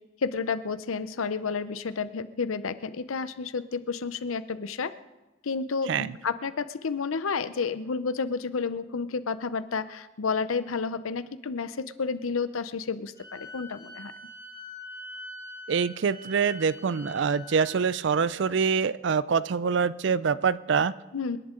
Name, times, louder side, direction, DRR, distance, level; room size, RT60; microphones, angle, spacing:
voice 1, 0.2-4.9 5.4-14.1 21.1-21.4, left 5 dB, 90° left, 13 dB, 0.7 m, -31 dB
Wind instrument woodwind instrument, 13.1-17.9, left 1 dB, 20° right, 2.6 m, -44 dB
voice 2, 15.7-20.9, right 6 dB, 60° right, 18 dB, 0.4 m, -25 dB
27.5 x 11.0 x 3.8 m, 1.1 s
head